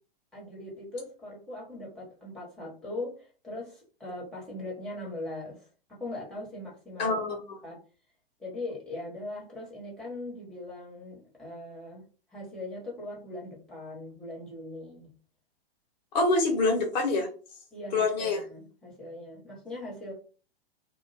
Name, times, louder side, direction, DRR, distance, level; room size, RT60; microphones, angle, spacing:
voice 1, 0.3-7.2 7.6-7.8 8.4-12.0 12.3-15.1 17.7-20.1, left 2 dB, ahead, 1.1 m, -40 dB
voice 2, 7.0-7.6 16.1-17.3 17.9-18.4, left 3 dB, 45° left, 0.8 m, -26 dB
2.2 x 2.0 x 3.3 m
figure-of-eight pair, 110°, 30 cm